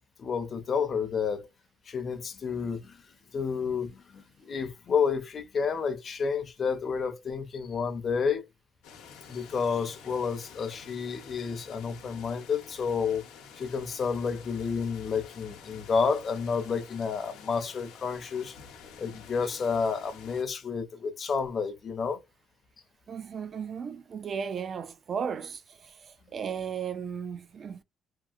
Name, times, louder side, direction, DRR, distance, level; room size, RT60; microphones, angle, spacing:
voice 1, 0.2-1.5 1.9-3.0 3.3-8.4 9.3-13.2 13.6-18.6 19.0-22.2, left 5 dB, 40° left, 0.6 m, -30 dB
sound 1, 8.8-20.4, left 6 dB, 90° left, 0.8 m, -50 dB
voice 2, 23.1-27.8, right 7 dB, 40° right, 0.4 m, -35 dB
2.8 x 2.7 x 2.4 m
cardioid pair, 115°, 0 cm